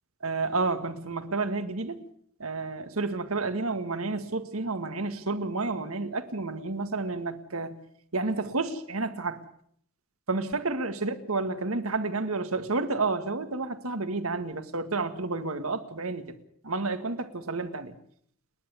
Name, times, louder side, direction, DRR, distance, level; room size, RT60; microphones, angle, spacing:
voice 1, 0.2-2.0 2.4-7.8 8.1-9.4 10.3-16.4 16.6-17.9, right 3 dB, 80° right, 9 dB, 1.9 m, -30 dB
30.0 x 10.5 x 8.4 m, 0.64 s
head